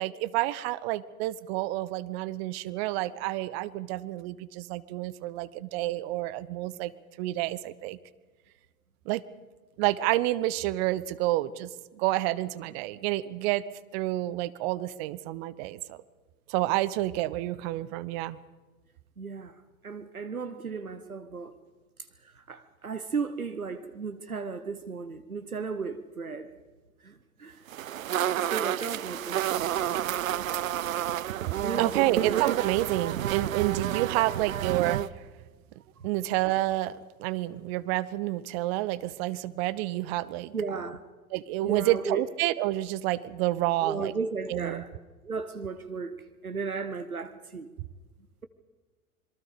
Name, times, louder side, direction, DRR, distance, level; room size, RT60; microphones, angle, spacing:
voice 1, 0.0-6.9 7.2-8.0 9.1-9.2 9.8-13.6 13.9-16.0 16.5-18.4 31.8-35.0 36.0-40.5 41.3-44.1 44.5-44.8, right 16 dB, 45° right, 1.0 m, -29 dB
voice 2, 19.2-21.5 22.2-26.5 27.0-27.6 28.4-30.5 31.6-32.4 36.0-36.1 40.5-41.0 41.6-42.2 43.8-44.9 45.2-47.7, right 5 dB, 85° right, 1.1 m, -35 dB
sound 1, 27.7-35.1, right 11 dB, 70° right, 0.7 m, -30 dB
27.0 x 22.5 x 5.1 m
figure-of-eight pair, 80°, 42 cm